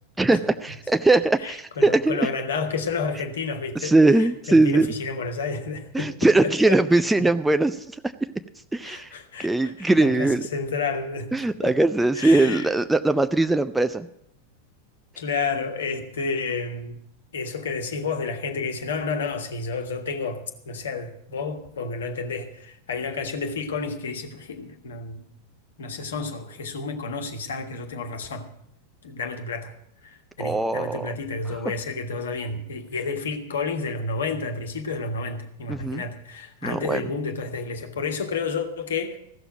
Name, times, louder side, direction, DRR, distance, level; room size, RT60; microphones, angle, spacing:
voice 1, 0.2-2.3 3.8-4.9 5.9-7.8 8.7-9.1 9.4-10.4 11.3-14.1 30.4-31.1 35.7-36.0 36.6-37.0, right 2 dB, 5° right, 9 dB, 0.5 m, -20 dB
voice 2, 1.4-7.0 8.8-11.3 11.6-11.8 12.1-12.7 15.2-17.0 17.3-25.3 25.8-28.5 29.0-29.7 30.0-39.2, left 4 dB, 65° left, 6 dB, 1.5 m, -30 dB
15.0 x 6.9 x 8.9 m, 0.74 s
figure-of-eight pair, 90°, 0 cm